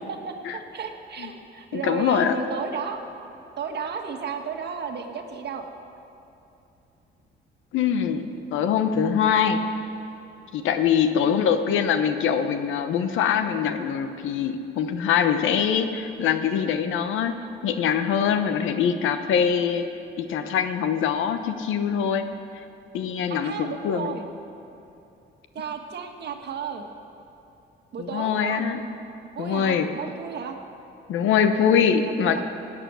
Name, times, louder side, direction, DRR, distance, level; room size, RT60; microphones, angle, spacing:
voice 1, 0.0-3.0 3.6-5.7 11.2-11.5 23.3-24.2 25.5-26.8 27.9-28.6 29.3-30.5 32.2-32.4, right 6 dB, 55° right, 4 dB, 1.5 m, -33 dB
voice 2, 1.7-2.4 7.7-9.6 10.5-17.3 17.6-19.9 20.2-22.3 22.9-24.2 28.0-28.8 29.4-29.9 31.1-32.4, left 7 dB, 85° left, 9 dB, 0.9 m, -23 dB
17.5 x 8.8 x 6.2 m, 2.8 s
cardioid pair, 90°, 20 cm